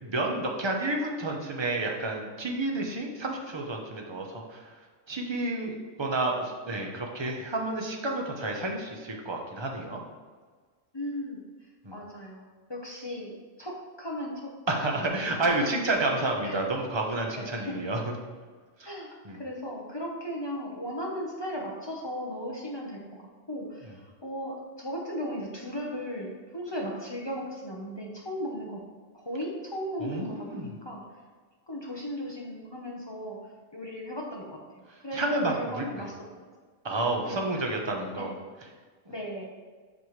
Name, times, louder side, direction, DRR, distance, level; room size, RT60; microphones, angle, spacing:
voice 1, 0.0-4.7 5.1-10.0 11.8-11.9 14.7-18.0 18.8-18.9 19.2-19.4 30.0-30.7 35.1-36.0 36.8-38.3, right 2 dB, 25° right, 1 dB, 0.8 m, -30 dB
voice 2, 10.9-11.4 11.9-13.3 13.6-14.5 14.9-15.8 16.4-16.6 17.3-17.8 18.8-28.8 29.1-31.0 31.7-33.4 33.7-34.6 35.0-36.4 37.2-37.7 38.2-38.3 39.1-39.4, equal, 25° left, -2 dB, 0.9 m, -36 dB
7.5 x 5.4 x 3.2 m, 1.5 s
omnidirectional pair, 1.3 m